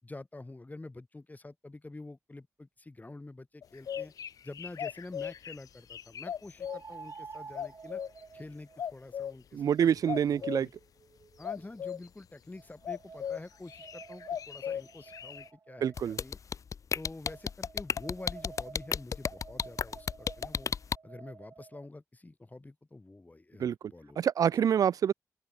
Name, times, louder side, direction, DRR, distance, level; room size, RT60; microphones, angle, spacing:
voice 1, 0.0-4.1 4.4-8.0 8.3-10.7 11.4-16.4 16.9-20.7 21.0-24.2, left 2 dB, 25° left, 6.7 m, -47 dB
sound 1, 3.6-6.8 7.5-8.2 8.8-9.3 10.1-10.6 11.4-12.1 12.8-13.4 13.7-15.5, left 8 dB, 80° left, 1.3 m, -37 dB
sound 2, 4.0-4.1 6.6-11.8 12.5-16.3 17.3-21.9, right 5 dB, 55° right, 4.2 m, -51 dB
voice 2, 9.5-10.7 15.8-16.2 23.6-23.7 24.2-25.1, right 8 dB, 80° right, 1.3 m, -26 dB
sound 3, 16.0-21.0, left 6 dB, 65° left, 0.9 m, -31 dB
open air
cardioid pair, 50°, 6 cm